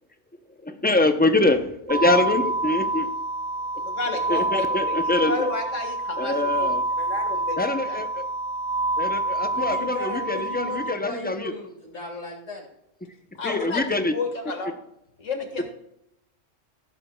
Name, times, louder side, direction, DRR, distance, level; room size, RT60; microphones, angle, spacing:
voice 1, 0.6-3.1 4.3-5.5 6.2-6.8 7.6-8.2 9.0-11.5 13.4-14.1, left 2 dB, 15° left, 7 dB, 0.3 m, -24 dB
sound 1, 1.9-10.9, right 2 dB, 60° right, 1.2 m, -27 dB
voice 2, 3.8-8.0 13.4-14.7 15.2-15.7, left 3 dB, 85° left, 4 dB, 1.9 m, -31 dB
voice 3, 9.5-12.7, left 2 dB, 65° left, -1 dB, 2.7 m, -35 dB
14.5 x 7.9 x 2.2 m, 0.79 s
omnidirectional pair, 1.3 m